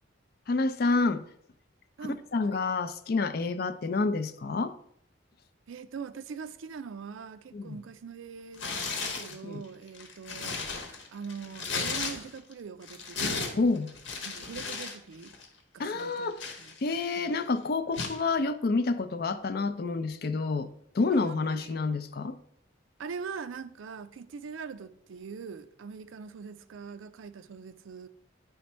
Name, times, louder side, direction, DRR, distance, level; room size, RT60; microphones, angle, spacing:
voice 1, 0.5-1.2 2.0-4.7 7.5-7.8 9.4-9.6 13.5-13.9 15.8-20.7 20.9-22.4, left 3 dB, 50° left, 0.4 m, -28 dB
voice 2, 2.0-2.6 5.7-13.6 14.2-15.3 15.7-16.3 16.6-16.7 17.2-17.3 21.1-21.8 23.0-28.1, right 5 dB, 80° right, 0.4 m, -42 dB
Tearing, 8.5-9.4 9.9-12.5 12.8-15.0 15.2-15.5 16.0-17.1 17.9-18.2, left 4 dB, 70° left, 1.1 m, -35 dB
9.4 x 3.4 x 4.3 m
head